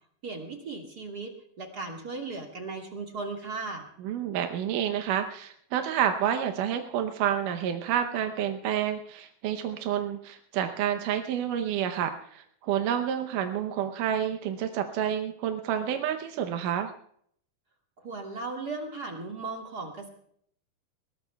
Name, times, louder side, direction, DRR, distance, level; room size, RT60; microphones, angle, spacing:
voice 1, 0.2-3.8 18.0-20.1, right 3 dB, 35° right, 1 dB, 1.9 m, -37 dB
voice 2, 4.0-16.9, right 9 dB, 90° right, 6 dB, 2.4 m, -29 dB
21.5 x 18.5 x 2.3 m, 0.64 s
omnidirectional pair, 3.6 m